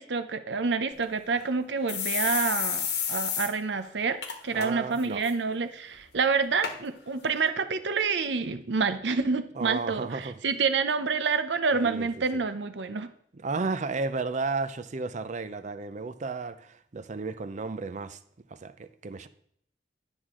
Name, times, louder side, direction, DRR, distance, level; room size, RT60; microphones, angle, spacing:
voice 1, 0.0-13.1, right 4 dB, 90° right, 0.7 m, -28 dB
sound 1, 0.9-1.0 1.4-1.5 1.9-3.5 3.8-3.9 4.2-4.7 5.0-5.3 6.0-6.1 6.6-6.8 7.5-7.6, left 8 dB, 70° left, 1.2 m, -30 dB
voice 2, 4.5-5.2 9.6-10.3 11.7-12.1 12.3-12.4 13.3-18.2 18.5-19.3, right 4 dB, 45° right, 0.5 m, -33 dB
10.0 x 6.2 x 3.7 m
head